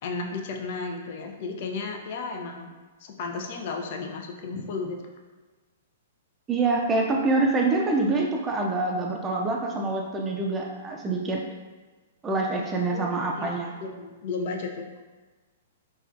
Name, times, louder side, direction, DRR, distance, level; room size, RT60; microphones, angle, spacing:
voice 1, 0.0-2.7 3.0-5.0 12.9-15.0, left 4 dB, 55° left, 2 dB, 0.4 m, -34 dB
voice 2, 6.5-11.4 12.2-13.7, right 3 dB, 20° right, 0 dB, 0.4 m, -25 dB
3.1 x 2.3 x 2.5 m, 1.3 s
hypercardioid pair, 115°, 0 cm